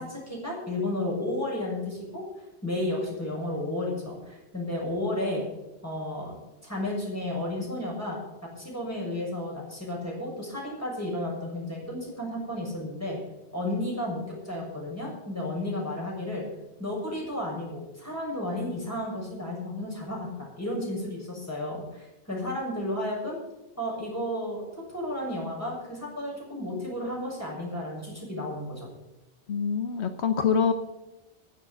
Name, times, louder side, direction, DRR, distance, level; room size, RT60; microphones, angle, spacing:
voice 1, 0.0-2.2 2.6-5.4 5.8-6.4 6.6-8.2 8.6-13.2 13.5-16.5 16.8-23.4 23.8-28.9, left 1 dB, 15° left, -4 dB, 6.8 m, -32 dB
voice 2, 29.5-30.7, left 6 dB, 80° left, 8 dB, 1.2 m, -25 dB
10.5 x 9.8 x 8.6 m, 0.98 s
omnidirectional pair, 1.1 m